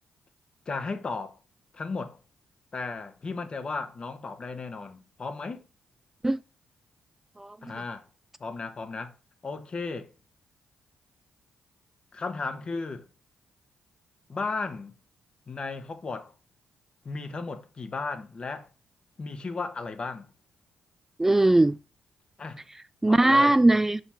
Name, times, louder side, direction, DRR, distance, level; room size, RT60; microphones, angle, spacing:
voice 1, 0.7-1.4 1.7-2.2 2.7-5.7 7.6-8.0 8.4-9.2 9.4-10.1 12.1-13.1 14.3-14.9 15.5-16.3 17.0-18.7 19.2-20.3 22.4-22.6 23.1-23.6, left 4 dB, 45° left, 1.1 m, -35 dB
voice 2, 7.4-7.7 21.2-21.8 23.0-24.0, right 2 dB, 15° right, 0.3 m, -20 dB
5.5 x 5.4 x 5.6 m
hypercardioid pair, 45°, 2 cm